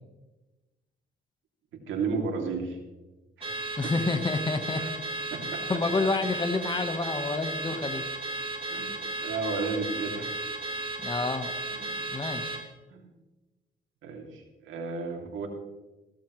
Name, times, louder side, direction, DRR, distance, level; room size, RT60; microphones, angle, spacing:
voice 1, 1.9-2.8 3.4-3.6 4.8-4.9 5.3-5.6 8.7-8.9 9.2-10.3 11.7-11.9 12.9-13.1 14.0-15.5, right 4 dB, 80° right, 1 dB, 2.9 m, -33 dB
Car / Alarm, 3.4-12.7, right 2 dB, 30° right, 2.6 m, -34 dB
voice 2, 3.8-4.8 5.7-8.0 11.0-11.5 12.1-12.6, left 3 dB, 25° left, 8 dB, 1.3 m, -28 dB
16.0 x 14.0 x 3.2 m, 1.1 s
cardioid pair, 90°, 20 cm